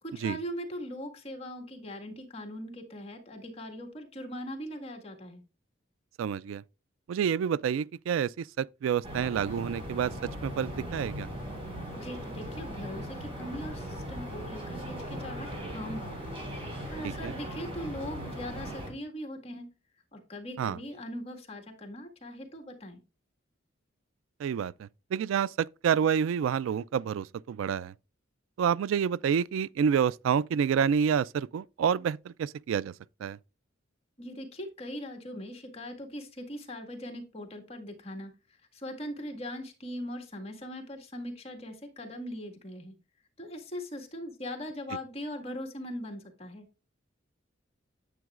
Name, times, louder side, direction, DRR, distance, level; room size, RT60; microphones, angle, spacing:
voice 1, 0.0-5.4 11.9-19.7 20.1-23.0 34.2-38.3 38.7-42.9 43.4-46.7, equal, 30° left, 1.7 m, -40 dB
voice 2, 6.2-6.6 7.1-10.1 10.4-11.3 17.0-17.3 20.6-20.8 24.4-27.9 28.6-32.9 33.2-33.4, right 7 dB, 90° right, 0.3 m, -28 dB
sound 1, 9.0-18.9, equal, 30° right, 4.5 m, -39 dB
9.1 x 8.0 x 2.4 m
head